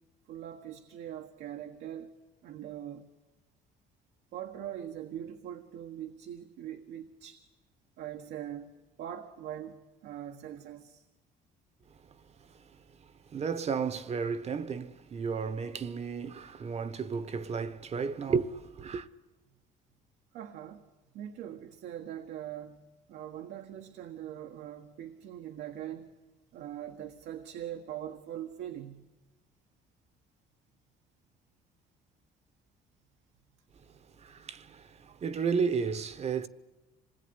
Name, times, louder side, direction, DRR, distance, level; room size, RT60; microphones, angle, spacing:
voice 1, 0.3-2.1 2.4-3.1 4.3-7.4 8.0-11.0 20.3-20.8 21.1-22.8 23.1-26.1 26.5-29.1, right 10 dB, 80° right, 1.6 m, -42 dB
voice 2, 13.3-19.1 34.2-36.5, right 6 dB, 40° right, 1.2 m, -33 dB
26.0 x 19.5 x 9.7 m
cardioid pair, 110°, 17 cm